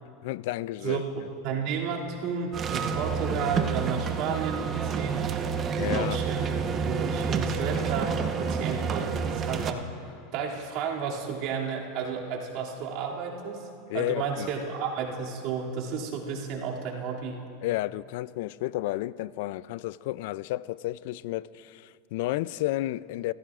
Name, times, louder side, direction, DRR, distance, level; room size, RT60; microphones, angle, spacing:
voice 1, 0.2-1.0 5.8-6.2 13.9-14.5 17.6-23.3, left 16 dB, 70° left, 0.3 m, -31 dB
voice 2, 1.4-5.2 5.8-6.5 6.9-9.9 10.3-13.6 13.9-17.4, right 6 dB, 60° right, 2.5 m, -32 dB
sound 1, 2.5-9.7, right 6 dB, 35° right, 1.0 m, -29 dB
24.5 x 15.5 x 2.4 m
hypercardioid pair, 105°, 0 cm